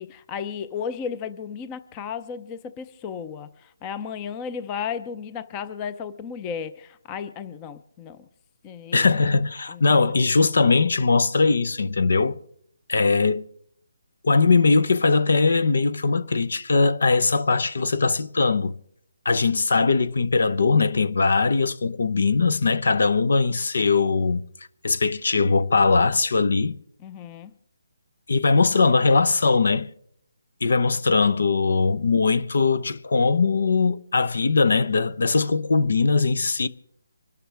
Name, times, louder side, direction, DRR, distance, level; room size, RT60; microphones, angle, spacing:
voice 1, 0.0-8.2 8.6-9.1 9.7-9.8 27.0-27.5, left 7 dB, 20° left, 0.6 m, -34 dB
voice 2, 8.9-12.4 12.9-13.4 14.2-18.7 19.2-24.4 24.8-26.8 28.3-29.9 30.6-36.7, left 4 dB, 70° left, 0.9 m, -20 dB
26.0 x 12.5 x 3.4 m
hypercardioid pair, 165°, 0 cm